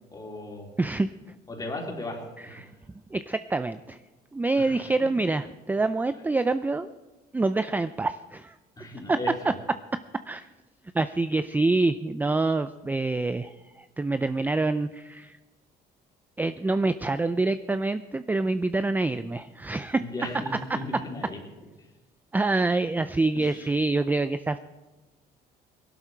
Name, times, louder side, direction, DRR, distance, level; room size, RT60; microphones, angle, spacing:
voice 1, 0.1-0.7 1.5-2.8 4.6-5.1 8.8-9.5 20.0-21.4 21.8-21.9 23.3-23.8, left 2 dB, 25° left, -1 dB, 3.7 m, -37 dB
voice 2, 0.8-1.1 2.6-2.7 3.1-4.0 4.3-6.9 7.3-8.6 9.1-9.2 10.3-10.5 10.9-15.4 16.4-20.0 22.3-24.6, right 3 dB, 10° right, 12 dB, 0.4 m, -26 dB
18.5 x 12.0 x 4.5 m, 1.2 s
cardioid pair, 110°, 17 cm